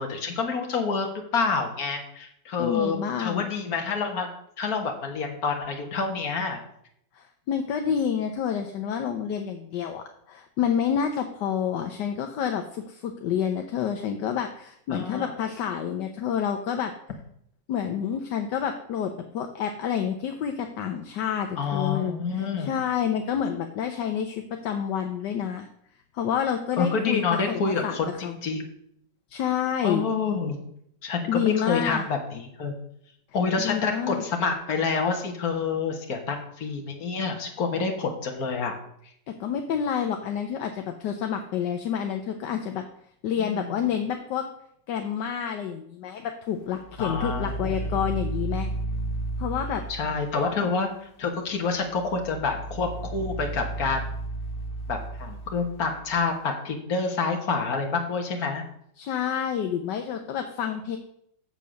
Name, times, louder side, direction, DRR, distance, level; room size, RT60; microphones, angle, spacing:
voice 1, 0.0-4.3 4.6-6.6 14.9-15.3 21.6-22.7 26.8-28.7 29.8-30.6 31.0-32.7 33.3-38.8 43.4-43.7 47.0-47.9 49.9-50.9 51.2-54.0 54.9-58.6, left 4 dB, 55° left, 3 dB, 1.9 m, -28 dB
voice 2, 2.6-3.5 7.1-16.9 17.7-25.7 26.1-28.0 28.2-28.4 29.3-30.0 31.3-32.0 33.6-34.2 39.3-42.8 43.2-44.5 44.9-48.7 49.4-49.8 59.0-61.0, left 8 dB, 75° left, 5 dB, 1.4 m, -28 dB
sound 1, 46.8-50.5 51.8-56.2, right 2 dB, 40° left, 0.9 m, -33 dB
7.5 x 6.9 x 6.3 m, 0.70 s
omnidirectional pair, 2.0 m